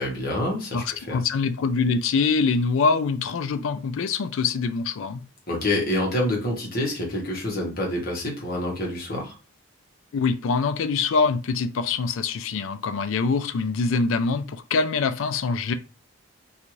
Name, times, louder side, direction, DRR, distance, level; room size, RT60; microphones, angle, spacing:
voice 1, 0.0-1.2 5.5-9.3, left 1 dB, 45° left, 1.0 m, -27 dB
voice 2, 0.7-5.2 10.1-15.7, left 4 dB, 70° left, 0.4 m, -24 dB
2.6 x 2.4 x 3.0 m
head